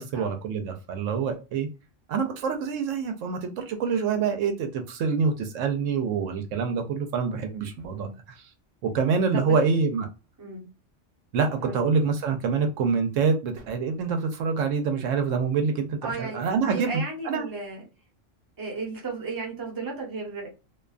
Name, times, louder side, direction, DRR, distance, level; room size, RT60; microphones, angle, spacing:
voice 1, 0.0-1.7 2.1-8.1 8.8-10.1 11.3-17.5, right 5 dB, 80° right, 0.9 m, -26 dB
voice 2, 16.0-17.8 18.6-20.5, right 4 dB, 20° right, 0.8 m, -34 dB
2.5 x 2.3 x 2.3 m
omnidirectional pair, 1.3 m